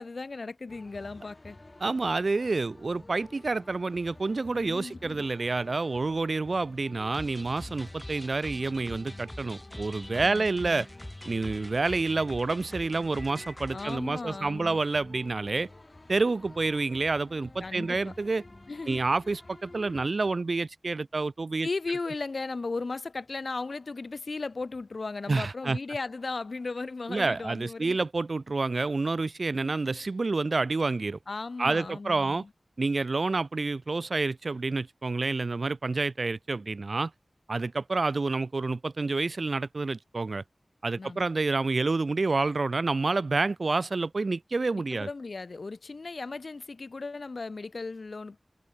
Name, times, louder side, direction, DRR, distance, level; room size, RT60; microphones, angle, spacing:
voice 1, 0.0-1.6 4.5-5.2 10.2-10.8 13.7-14.8 17.6-18.1 18.7-19.0 21.6-28.0 29.5-29.7 31.3-32.5 41.0-41.3 44.7-48.4, left 3 dB, 80° left, 2.3 m, -36 dB
sound 1, 0.7-20.1, left 2 dB, 40° left, 3.0 m, -50 dB
voice 2, 1.8-10.9 11.3-15.7 16.1-18.4 18.9-21.7 25.3-25.8 27.1-31.2 31.6-32.4 32.8-37.1 37.5-40.4 40.8-45.1, right 3 dB, 75° right, 0.6 m, -28 dB
sound 2, 7.1-14.0, left 1 dB, 15° left, 1.4 m, -44 dB
wide cardioid pair, 45°, 0 cm